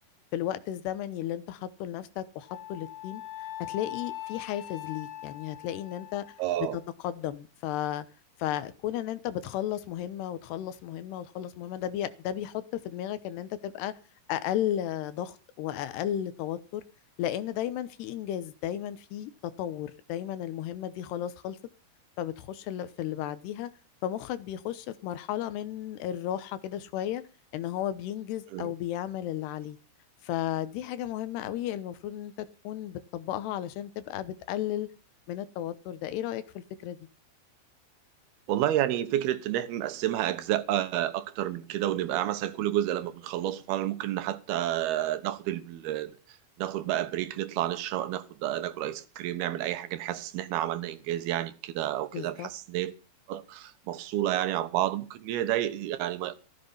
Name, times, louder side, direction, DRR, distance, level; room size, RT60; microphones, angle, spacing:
voice 1, 0.3-3.2 3.7-6.2 7.0-8.1 8.4-13.9 14.3-16.8 17.2-19.3 19.6-21.6 22.2-23.7 24.0-27.2 27.5-29.8 30.2-34.9 35.3-36.4 36.8-37.0 52.1-52.5, left 11 dB, 85° left, 3.1 m, -34 dB
Wind instrument woodwind instrument, 2.5-6.8, left 13 dB, 65° left, 3.1 m, -41 dB
voice 2, 6.4-6.8 28.5-28.7 38.5-52.9 53.3-56.3, right 13 dB, 80° right, 2.9 m, -30 dB
14.0 x 13.5 x 5.5 m
omnidirectional pair, 4.6 m